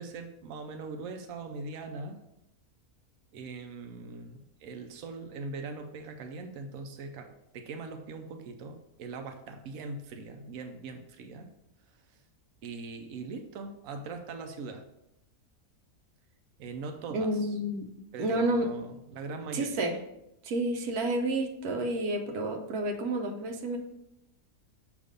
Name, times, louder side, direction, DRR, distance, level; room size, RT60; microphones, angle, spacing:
voice 1, 0.0-2.2 3.3-11.5 12.1-12.2 12.6-14.8 16.6-17.5 18.1-19.8, right 3 dB, 70° right, 5 dB, 1.0 m, -41 dB
voice 2, 17.1-17.9 18.2-18.7 19.5-20.0 20.4-23.8, right 1 dB, 90° right, 4 dB, 1.3 m, -30 dB
6.6 x 3.0 x 5.1 m, 0.82 s
omnidirectional pair, 1.5 m